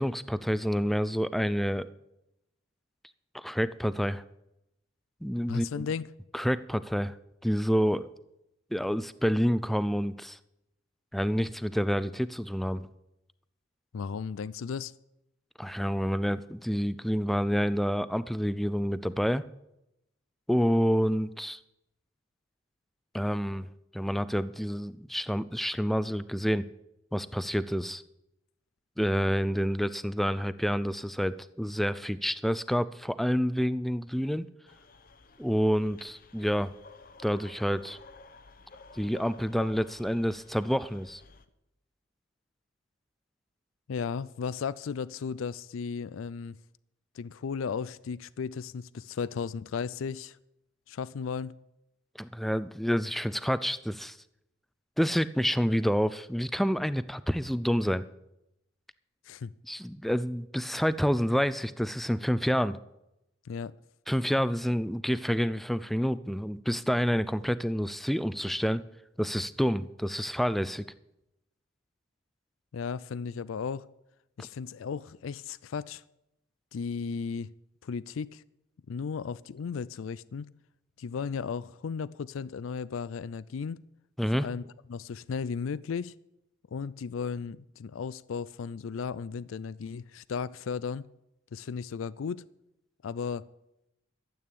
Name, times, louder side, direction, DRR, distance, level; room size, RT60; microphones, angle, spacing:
voice 1, 0.0-1.9 3.3-4.2 5.2-5.9 6.3-7.1 7.4-8.1 8.7-10.4 11.1-12.9 15.6-19.4 20.5-21.6 23.1-23.7 23.9-26.7 27.1-28.0 29.0-34.5 35.4-36.7 37.2-38.0 38.9-41.2 52.2-54.2 55.0-58.1 59.7-62.8 64.1-68.8 69.2-70.8 84.2-84.5, equal, ahead, 0.4 m, -28 dB
voice 2, 5.5-6.1 13.9-14.9 43.9-46.6 47.1-50.4 50.9-51.6 59.3-59.5 63.4-63.7 72.7-73.9 74.4-76.0 76.7-77.5 77.8-78.4 78.9-80.5 81.0-83.8 84.3-84.6 84.9-86.1 86.7-91.1 91.5-92.4 93.0-93.5, left 6 dB, 90° left, 0.4 m, -35 dB
sound 1, 34.7-41.5, left 3 dB, 45° left, 0.8 m, -52 dB
12.5 x 8.7 x 8.4 m
head